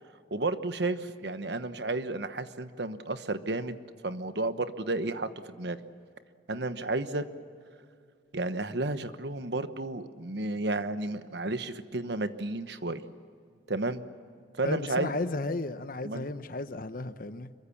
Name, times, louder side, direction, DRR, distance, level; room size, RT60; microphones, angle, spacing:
voice 1, 0.3-3.8 4.0-5.8 6.5-7.2 8.3-13.0 13.7-14.0 14.6-15.1 16.0-16.3, right 2 dB, 70° right, 1.2 m, -32 dB
voice 2, 14.6-17.5, left 2 dB, 50° left, 1.0 m, -34 dB
26.0 x 23.0 x 7.2 m
head